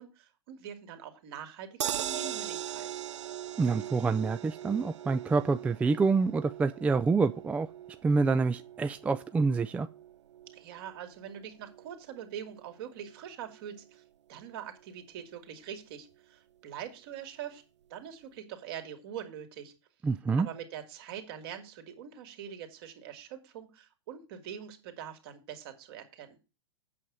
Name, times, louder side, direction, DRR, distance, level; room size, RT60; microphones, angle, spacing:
voice 1, 0.0-2.9 10.5-14.0 14.3-17.6 17.9-19.7 20.4-26.4, right 9 dB, 50° right, 2.6 m, -43 dB
sound 1, 1.8-14.0 14.4-14.5 14.8-14.9, right 11 dB, 65° right, 0.5 m, -41 dB
voice 2, 3.6-7.7 8.0-9.9 20.0-20.5, right 4 dB, 10° right, 0.4 m, -27 dB
8.4 x 7.4 x 4.9 m
figure-of-eight pair, 105°, 16 cm